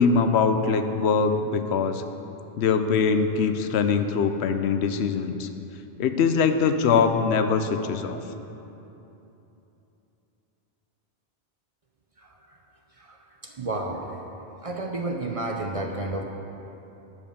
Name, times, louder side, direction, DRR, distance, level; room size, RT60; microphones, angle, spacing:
voice 1, 0.0-2.0 2.6-5.5 6.0-8.2, left 5 dB, 80° left, 8 dB, 0.8 m, -22 dB
voice 2, 12.2-12.6 13.0-14.2 14.6-16.2, right 2 dB, 40° right, 2 dB, 0.5 m, -32 dB
9.6 x 5.2 x 6.5 m, 3.0 s
omnidirectional pair, 1.1 m